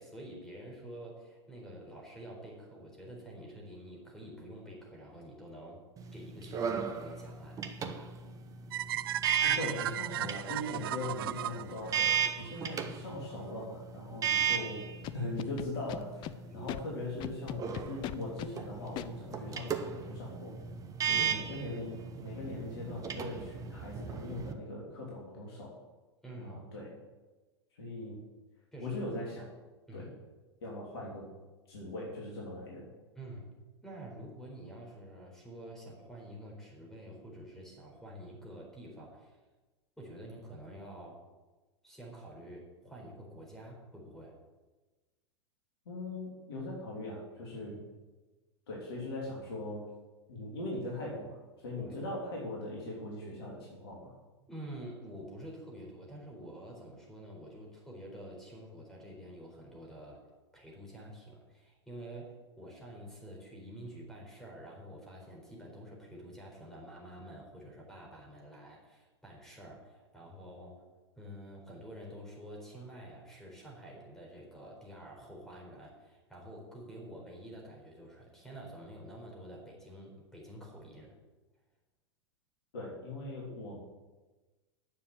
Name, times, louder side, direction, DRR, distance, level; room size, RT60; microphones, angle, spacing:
voice 1, 0.0-5.9 6.1-8.1 12.9-13.0 16.5-16.7 21.2-21.5 26.2-26.6 28.7-29.0 29.9-30.1 33.2-33.5 33.8-39.4 40.0-41.3 41.8-44.4 47.5-47.8 51.8-51.9 54.4-60.3 60.5-70.8 71.2-81.2, right 1 dB, 5° left, -2 dB, 4.3 m, -48 dB
sound 1, 6.0-24.5, right 8 dB, 25° right, 1.1 m, -36 dB
sound 2, 8.7-12.8, right 13 dB, 55° right, 0.4 m, -36 dB
voice 2, 9.4-14.9 15.1-20.5 21.0-25.8 26.3-27.0 27.8-28.2 28.8-29.5 29.9-30.1 30.6-31.3 31.7-32.9 45.8-47.8 48.7-49.8 50.3-54.1 82.7-83.8, left 1 dB, 60° left, -3 dB, 3.2 m, -40 dB
Scratching (performance technique), 15.0-16.3 16.7-16.8 17.2-18.5 19.0-19.1, left 14 dB, 30° left, 0.5 m, -38 dB
10.0 x 7.2 x 9.0 m, 1.2 s
figure-of-eight pair, 90°, 15 cm